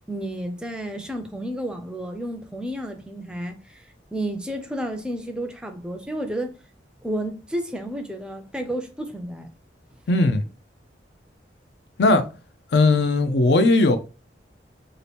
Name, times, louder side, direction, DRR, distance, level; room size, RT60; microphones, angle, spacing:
voice 1, 0.1-3.8 4.1-6.5 7.0-9.5, right 1 dB, 5° right, 0.4 m, -31 dB
voice 2, 10.1-10.4 12.0-12.2 12.7-14.0, left 2 dB, 70° left, 0.5 m, -18 dB
2.8 x 2.5 x 3.3 m
head